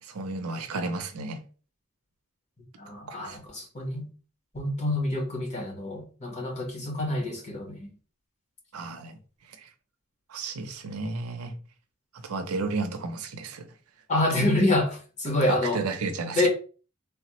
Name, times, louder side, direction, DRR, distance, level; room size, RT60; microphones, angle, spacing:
voice 1, 0.0-1.4 3.1-3.4 8.7-9.2 9.5-9.7 10.3-11.5 12.2-13.7 15.5-16.5, right 3 dB, 80° right, 0.5 m, -33 dB
voice 2, 2.8-4.1 4.5-7.9 14.1-15.8 16.3-16.5, left 1 dB, 35° left, 0.9 m, -27 dB
3.3 x 2.1 x 2.9 m
head